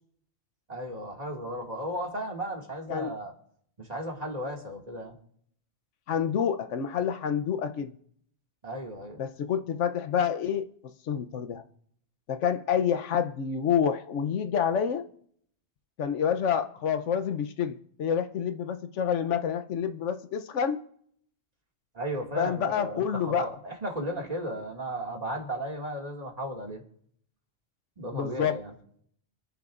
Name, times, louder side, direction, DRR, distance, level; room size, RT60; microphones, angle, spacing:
voice 1, 0.7-3.3 3.8-5.2 8.6-9.2 21.9-26.8 28.0-28.7, right 1 dB, 35° right, 2.2 m, -35 dB
voice 2, 6.1-7.9 9.2-11.6 12.3-15.1 16.0-20.8 22.4-23.5 28.1-28.6, left 8 dB, 85° left, 1.1 m, -28 dB
26.5 x 10.5 x 2.5 m
omnidirectional pair, 1.2 m